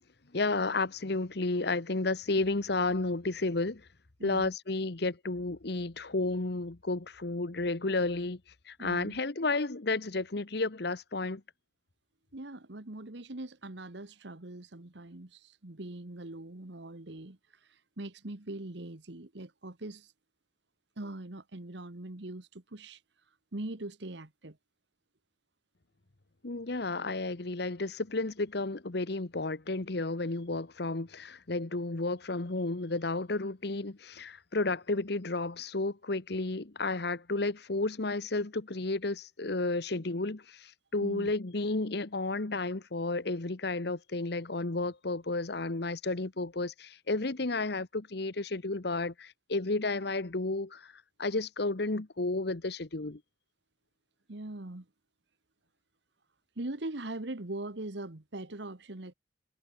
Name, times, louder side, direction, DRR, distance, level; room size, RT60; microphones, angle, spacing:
voice 1, 0.3-3.8 4.2-8.4 8.7-11.4 26.4-50.9 51.2-53.2, left 2 dB, 60° left, 1.1 m, -32 dB
voice 2, 4.2-4.5 8.8-9.2 12.3-20.1 21.0-24.6 41.0-41.3 54.3-54.8 56.5-59.1, right 2 dB, 65° right, 1.5 m, -42 dB
head